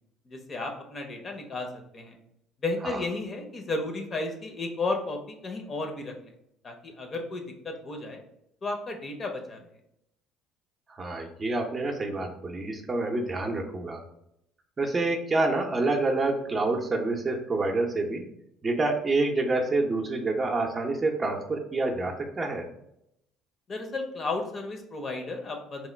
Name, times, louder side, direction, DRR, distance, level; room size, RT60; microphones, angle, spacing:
voice 1, 0.3-1.7 1.9-2.2 2.6-6.3 6.6-8.2 8.6-9.6 23.7-25.9, left 2 dB, 40° left, 4 dB, 0.6 m, -33 dB
voice 2, 10.9-14.0 14.8-18.2 18.6-22.7, right 2 dB, 30° right, 3 dB, 0.5 m, -27 dB
2.9 x 2.1 x 3.2 m, 0.78 s
hypercardioid pair, 60°, 0 cm